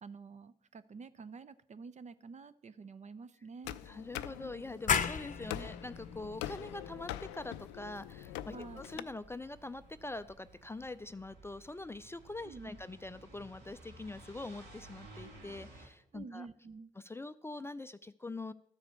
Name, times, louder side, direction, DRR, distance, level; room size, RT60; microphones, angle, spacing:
voice 1, 0.0-3.8 5.5-5.7 8.5-9.0 12.4-12.8 16.1-16.9, right 4 dB, 40° right, 13 dB, 0.7 m, -49 dB
sound 1, 3.6-9.0, left 13 dB, 75° left, 0.4 m, -44 dB
voice 2, 3.9-16.5 17.0-18.5, left 2 dB, 15° left, 13 dB, 0.4 m, -44 dB
sound 2, 4.9-10.3, left 7 dB, 45° left, 0.7 m, -38 dB
sound 3, 5.1-15.9, right 2 dB, 65° right, 3.4 m, -57 dB
12.5 x 4.9 x 6.8 m, 0.75 s
hypercardioid pair, 45°, 18 cm